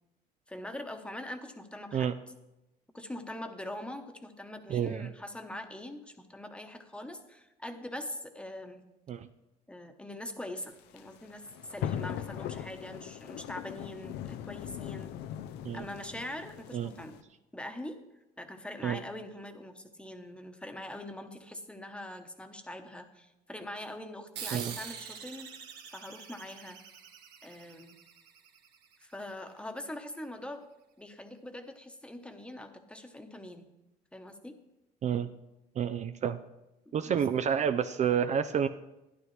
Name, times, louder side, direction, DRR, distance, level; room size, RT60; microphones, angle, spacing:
voice 1, 0.5-2.1 2.9-8.8 9.7-15.1 15.7-17.2 17.5-18.0 18.4-25.5 25.9-26.8 27.4-27.9 29.0-30.6 31.0-33.6 34.1-34.6 37.1-37.3, left 1 dB, 5° left, 6 dB, 1.1 m, -43 dB
voice 2, 4.7-5.1 9.1-9.3 15.6-15.9 16.7-16.9 18.8-19.0 24.5-24.7 35.0-35.3 35.8-36.4 36.9-38.7, right 8 dB, 45° right, 10 dB, 0.5 m, -29 dB
sound 1, 10.6-17.2, left 10 dB, 90° left, 0.5 m, -40 dB
sound 2, 24.4-29.3, right 7 dB, 85° right, 1.4 m, -45 dB
12.5 x 11.0 x 3.3 m, 0.95 s
cardioid pair, 110°, 17 cm